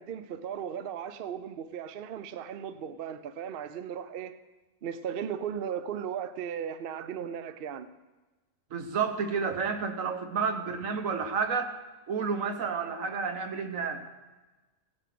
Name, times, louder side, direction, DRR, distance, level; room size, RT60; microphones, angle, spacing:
voice 1, 0.0-4.4 4.8-7.9, right 8 dB, 55° right, 0.7 m, -36 dB
voice 2, 8.7-11.7 12.1-14.1, right 5 dB, 80° right, 1.5 m, -30 dB
16.5 x 8.7 x 6.0 m
omnidirectional pair, 1.4 m